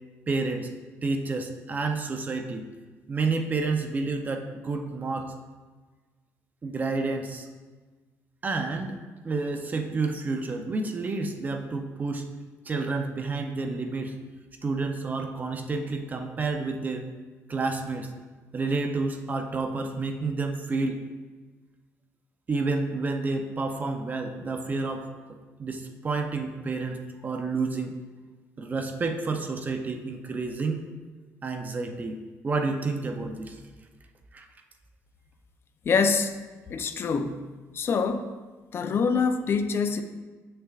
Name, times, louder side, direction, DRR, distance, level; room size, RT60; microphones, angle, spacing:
voice 1, 0.3-0.7 1.0-2.7 3.1-5.3 6.6-7.5 8.4-9.0 9.2-12.2 12.6-14.1 14.6-17.1 17.5-18.1 18.5-21.0 22.5-25.1 25.6-28.0 28.6-30.8 31.4-32.2 32.4-33.6 34.3-34.5, right 3 dB, 30° right, 5 dB, 0.6 m, -29 dB
voice 2, 35.9-36.3 36.7-37.4 37.7-38.3 38.7-40.0, left 5 dB, 40° left, 9 dB, 0.5 m, -25 dB
7.9 x 6.6 x 2.4 m, 1.3 s
cardioid pair, 120°, 6 cm